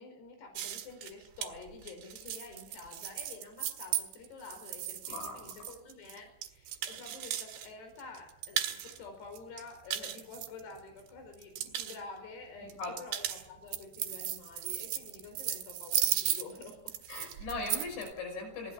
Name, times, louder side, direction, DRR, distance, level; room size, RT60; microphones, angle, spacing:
voice 1, 0.0-17.3, left 4 dB, 65° left, 4 dB, 6.8 m, -49 dB
sound 1, 0.5-7.7 8.0-9.0 9.3-11.0 11.3-12.0 12.7-18.1, right 11 dB, 75° right, 4.0 m, -36 dB
voice 2, 5.1-5.5 12.8-13.0 17.1-18.7, left 3 dB, 85° left, 5 dB, 7.8 m, -39 dB
25.0 x 18.5 x 7.4 m, 0.65 s
omnidirectional pair, 5.1 m